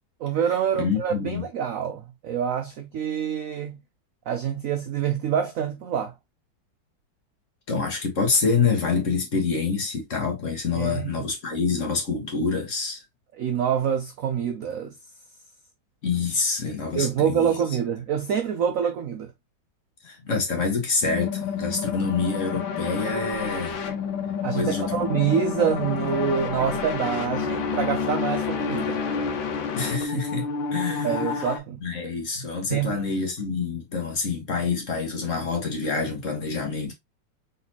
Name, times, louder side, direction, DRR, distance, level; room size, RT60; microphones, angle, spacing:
voice 1, 0.2-3.8 4.3-6.1 10.8-11.2 13.4-14.9 17.0-19.3 24.4-29.0 31.0-31.8 32.7-33.0, right 8 dB, 80° right, 0.7 m, -26 dB
voice 2, 0.8-1.4 7.7-13.0 16.0-17.5 20.0-23.8 24.5-25.1 29.8-31.1 31.8-36.9, left 4 dB, 45° left, 1.4 m, -26 dB
sound 1, 21.0-31.6, left 6 dB, 80° left, 1.7 m, -29 dB
4.0 x 4.0 x 2.8 m
omnidirectional pair, 2.1 m